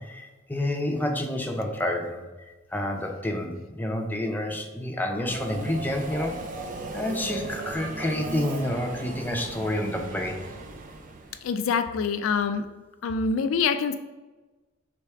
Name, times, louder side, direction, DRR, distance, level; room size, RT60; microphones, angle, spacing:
voice 1, 0.0-2.2 2.7-6.3 6.9-10.4, left 1 dB, 10° left, 2 dB, 0.5 m, -29 dB
Subway metro underground, 5.3-11.5, right 3 dB, 40° right, 0.4 m, -37 dB
voice 2, 11.4-12.6 13.0-13.9, left 5 dB, 90° left, 8 dB, 0.3 m, -25 dB
3.4 x 3.3 x 4.4 m, 1.2 s
head